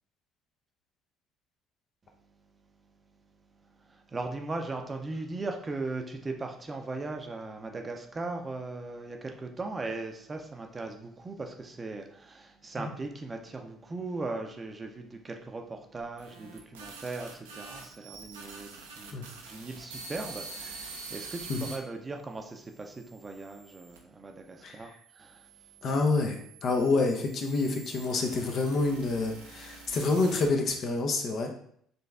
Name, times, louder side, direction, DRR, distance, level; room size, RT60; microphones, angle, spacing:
voice 1, 3.8-25.5, right 3 dB, 25° right, 4 dB, 0.6 m, -38 dB
sound 1, 16.0-21.8 22.4-24.0 24.8-30.8, right 4 dB, 80° right, 0.6 m, -46 dB
voice 2, 24.6-24.9 25.8-31.5, left 3 dB, 50° left, 3 dB, 0.7 m, -28 dB
4.2 x 3.3 x 3.4 m, 0.65 s
figure-of-eight pair, 55°, 0 cm